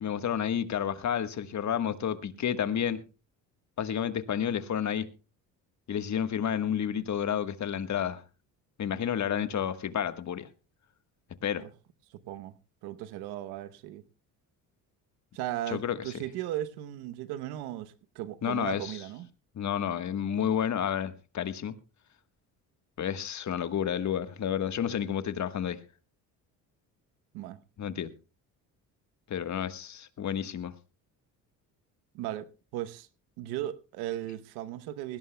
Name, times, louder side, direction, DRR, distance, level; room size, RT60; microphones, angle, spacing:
voice 1, 0.0-3.0 3.8-5.1 5.9-8.2 8.8-10.5 11.4-11.6 15.7-16.0 18.4-19.0 19.5-21.7 23.0-25.8 27.8-28.1 29.3-30.7, left 9 dB, 50° left, 1.4 m, -30 dB
voice 2, 12.1-12.5 12.8-14.0 15.3-19.3 27.3-27.6 32.1-33.1 33.4-35.2, right 13 dB, 85° right, 1.0 m, -37 dB
20.0 x 17.0 x 2.2 m
supercardioid pair, 75°, 37 cm